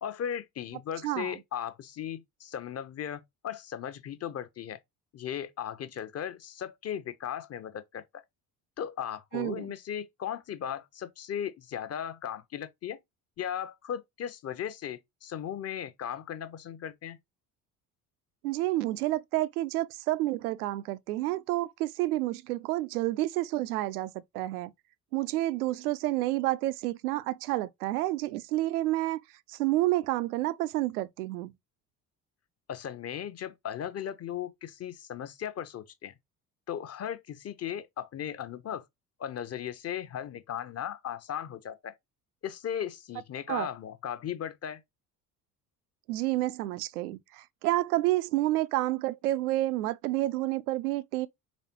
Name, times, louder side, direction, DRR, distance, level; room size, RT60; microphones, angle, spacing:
voice 1, 0.0-4.8 5.1-8.2 8.8-13.0 13.4-17.2 32.7-36.1 36.7-38.8 39.2-41.9 42.4-44.8, left 9 dB, 30° left, 0.7 m, -37 dB
voice 2, 1.0-1.4 9.3-9.7 18.4-24.7 25.1-29.2 29.5-31.5 43.5-43.7 46.1-51.3, right 17 dB, 70° right, 0.5 m, -29 dB
4.2 x 3.3 x 2.9 m
figure-of-eight pair, 55°, 46 cm